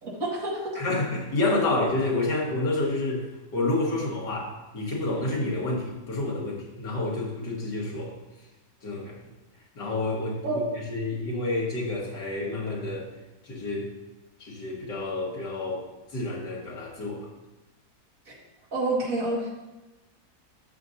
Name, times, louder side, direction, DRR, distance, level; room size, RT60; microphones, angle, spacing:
voice 1, 0.0-0.8 10.4-10.6 18.3-18.4 18.7-19.5, right 2 dB, 55° right, -5 dB, 2.5 m, -28 dB
voice 2, 0.8-3.2 3.5-8.1 8.8-9.2 9.8-10.6 10.9-13.1 13.4-13.9 14.4-15.8 16.1-17.3, left 2 dB, 85° left, -3 dB, 2.5 m, -29 dB
11.5 x 7.6 x 2.8 m, 1.0 s
omnidirectional pair, 1.8 m